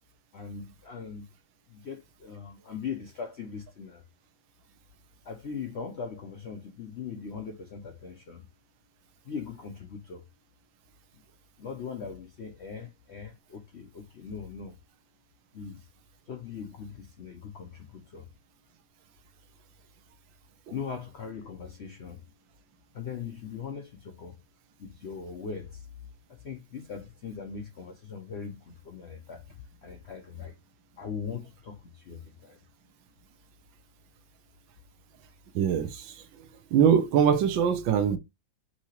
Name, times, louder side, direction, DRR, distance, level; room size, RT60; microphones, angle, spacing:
voice 1, 0.3-1.3 1.7-4.0 5.2-8.4 9.2-10.2 11.6-14.8 15.5-15.8 16.3-18.3 20.7-22.2 22.9-24.4 24.8-25.9 26.4-30.6 31.0-32.6, left 6 dB, 85° left, 0.5 m, -40 dB
voice 2, 35.5-36.0 36.7-38.2, right 8 dB, 80° right, 1.4 m, -22 dB
5.8 x 2.8 x 2.9 m
omnidirectional pair, 2.1 m